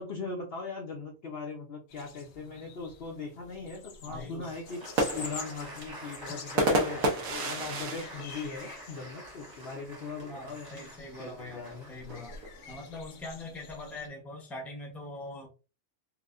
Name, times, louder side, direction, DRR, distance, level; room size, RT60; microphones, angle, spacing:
voice 1, 0.0-4.9 5.1-10.8 11.2-11.9, left 4 dB, 50° left, 0 dB, 0.8 m, -39 dB
sound 1, 1.9-14.1, left 5 dB, 70° left, 1.1 m, -49 dB
voice 2, 4.1-4.5 10.3-12.4 12.7-15.5, left 2 dB, ahead, 1 dB, 0.8 m, -42 dB
Applause, 4.4-13.4, right 1 dB, 15° right, 1.0 m, -48 dB
sound 2, 4.7-9.3 9.7-9.8 10.1-10.6 11.4-13.0, right 1 dB, 70° right, 1.2 m, -32 dB
4.7 x 2.2 x 2.5 m, 0.30 s
omnidirectional pair, 1.5 m